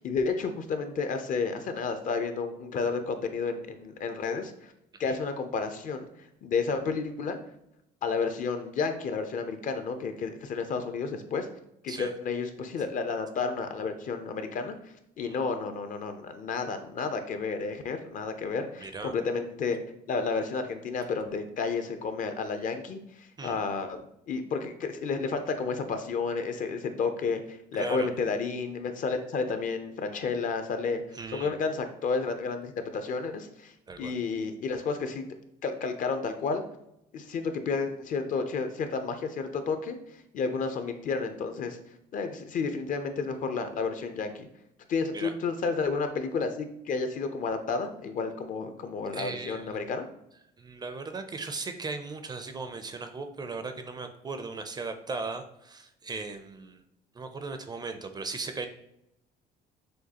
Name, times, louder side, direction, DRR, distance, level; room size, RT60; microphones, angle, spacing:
voice 1, 0.0-4.7 5.0-6.1 6.4-7.4 8.0-11.5 11.8-14.8 15.2-19.8 20.1-31.0 31.3-35.2 35.6-36.6 37.1-40.0 40.3-41.8 42.1-44.5 44.9-50.1, left 4 dB, 50° left, 8 dB, 0.5 m, -31 dB
voice 2, 18.8-19.1 23.4-23.6 27.7-28.1 31.1-31.5 33.9-34.1 45.1-45.3 49.1-49.9 50.6-56.8 57.1-58.7, right 3 dB, 25° right, 7 dB, 0.4 m, -37 dB
6.3 x 2.3 x 2.8 m, 0.80 s
cardioid pair, 110°, 17 cm